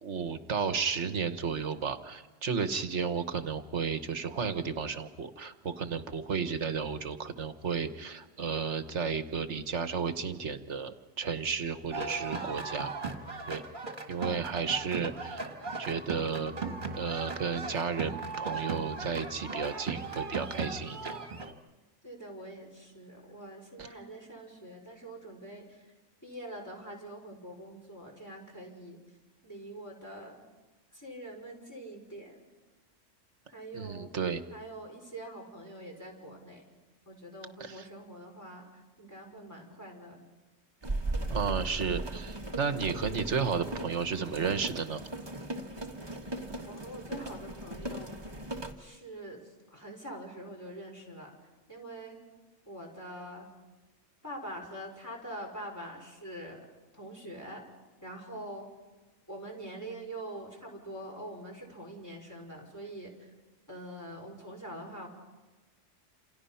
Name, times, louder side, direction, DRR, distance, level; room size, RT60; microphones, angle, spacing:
voice 1, 0.0-12.9 13.5-13.6 14.1-15.5 15.8-16.5 17.0-21.1 23.8-23.9 33.7-34.5 37.6-37.9 41.3-45.0, right 6 dB, 65° right, 10 dB, 1.5 m, -33 dB
sound 1, 11.9-21.5, right 4 dB, 40° right, 2.0 m, -37 dB
voice 2, 22.0-25.8 26.2-29.0 29.4-30.4 30.9-32.5 33.5-34.1 34.5-36.6 37.1-40.2 46.4-48.2 48.8-49.4 49.7-51.3 51.7-52.2 52.7-53.5 54.2-56.6 56.9-57.6 58.0-58.7 59.3-63.3 63.7-65.1, right 1 dB, 15° left, -2 dB, 5.0 m, -44 dB
sound 2, 40.8-48.7, right 2 dB, 20° right, 1.7 m, -38 dB
29.0 x 28.0 x 5.7 m, 1.2 s
omnidirectional pair, 1.3 m